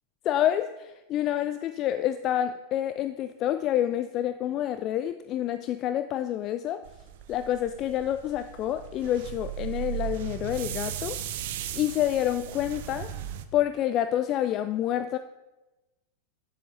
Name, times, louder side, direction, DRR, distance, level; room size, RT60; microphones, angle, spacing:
voice 1, 0.2-6.8 7.3-11.2 11.7-13.1 13.5-15.2, left 11 dB, 35° left, 10 dB, 0.3 m, -28 dB
sound 1, 6.8-13.4, right 11 dB, 55° right, 0.5 m, -37 dB
9.2 x 7.2 x 4.0 m, 1.1 s
figure-of-eight pair, 90°, 0 cm